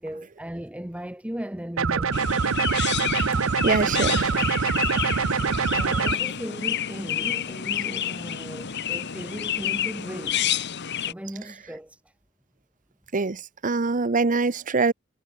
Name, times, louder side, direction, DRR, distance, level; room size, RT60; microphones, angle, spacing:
voice 1, 0.0-2.3 5.7-10.5 11.0-12.0, equal, 5° right, 1.1 m, -37 dB
sound 1, 1.8-6.2, right 5 dB, 70° right, 0.7 m, -24 dB
Chirp tweet, 2.1-11.1, left 9 dB, 55° left, 1.1 m, -29 dB
voice 2, 3.6-4.4 13.1-14.9, right 4 dB, 40° right, 0.8 m, -24 dB
head